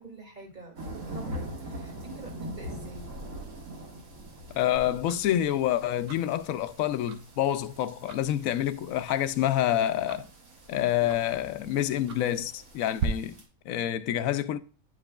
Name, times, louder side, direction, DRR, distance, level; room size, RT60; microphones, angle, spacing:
voice 1, 0.0-3.1, right 3 dB, 35° right, 1.8 m, -46 dB
sound 1, 0.8-13.4, equal, 70° right, 2.0 m, -43 dB
voice 2, 4.5-10.3 10.7-14.6, left 12 dB, 75° left, 1.0 m, -27 dB
Tick-tock, 4.7-13.1, right 7 dB, 85° right, 1.3 m, -43 dB
9.8 x 4.9 x 2.2 m
omnidirectional pair, 1.5 m